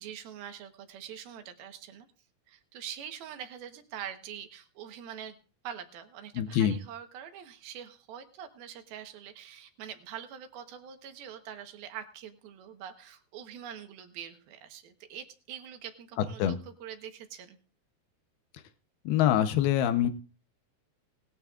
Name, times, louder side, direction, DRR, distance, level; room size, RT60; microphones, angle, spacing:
voice 1, 0.0-2.1 2.5-5.4 5.6-17.6, right 9 dB, 75° right, 7 dB, 3.0 m, -44 dB
voice 2, 6.4-6.8 16.4-16.6 19.1-20.1, left 11 dB, 80° left, 10 dB, 2.8 m, -24 dB
19.5 x 13.0 x 2.4 m, 0.38 s
omnidirectional pair, 4.5 m